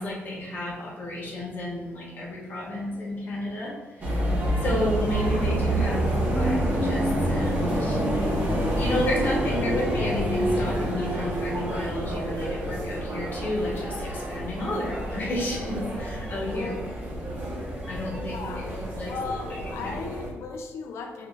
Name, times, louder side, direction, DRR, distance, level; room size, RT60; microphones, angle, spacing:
voice 1, 0.0-3.7 4.0-4.3 4.6-8.0 8.8-16.7 17.8-19.1 19.8-19.9, left 1 dB, 40° left, -2 dB, 1.1 m, -31 dB
sound 1, 4.0-20.3, right 1 dB, 35° right, 1.2 m, -28 dB
voice 2, 16.5-17.3 18.3-18.7 19.1-21.3, left 4 dB, 70° left, 3 dB, 0.5 m, -36 dB
6.4 x 2.7 x 2.5 m, 1.2 s
cardioid pair, 165°, 5 cm